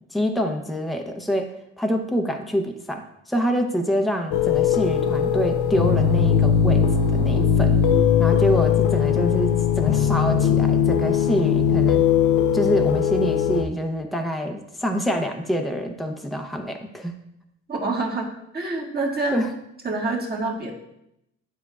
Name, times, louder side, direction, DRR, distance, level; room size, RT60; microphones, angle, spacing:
voice 1, 0.1-6.9 7.1-7.8 8.2-12.0 12.5-17.1 19.3-19.5, equal, ahead, 3 dB, 0.7 m, -26 dB
sound 1, 4.3-13.6, left 8 dB, 90° left, 0.6 m, -20 dB
voice 2, 17.7-18.3 18.5-19.5 19.8-20.7, right 3 dB, 30° right, -2 dB, 1.7 m, -26 dB
10.0 x 4.4 x 2.4 m, 0.81 s
cardioid pair, 90°, 30 cm